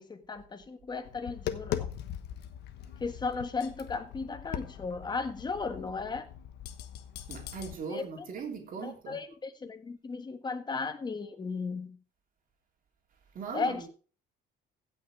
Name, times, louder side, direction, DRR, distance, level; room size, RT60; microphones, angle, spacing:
voice 1, 0.0-1.9 3.0-6.3 7.9-8.3 8.8-12.0 13.5-13.8, left 4 dB, 25° left, 1.5 m, -35 dB
Tap, 1.0-7.7, left 10 dB, 85° left, 1.2 m, -40 dB
voice 2, 7.3-9.2 13.3-13.9, right 5 dB, 55° right, 3.0 m, -39 dB
16.0 x 6.0 x 4.8 m
cardioid pair, 110°, 17 cm